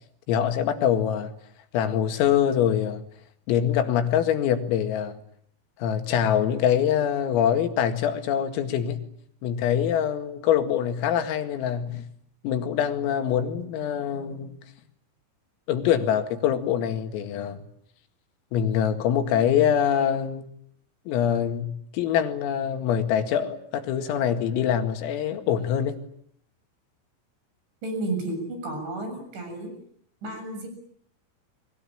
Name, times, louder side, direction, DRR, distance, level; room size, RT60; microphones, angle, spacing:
voice 1, 0.3-1.3 1.7-3.0 3.5-5.2 5.8-9.0 9.4-12.0 12.4-14.6 15.7-17.6 18.5-20.5 21.1-26.0, left 9 dB, 80° left, 4.7 m, -24 dB
voice 2, 27.8-29.7 30.2-30.7, right 2 dB, 60° right, 9.2 m, -32 dB
29.5 x 23.0 x 8.7 m
omnidirectional pair, 5.9 m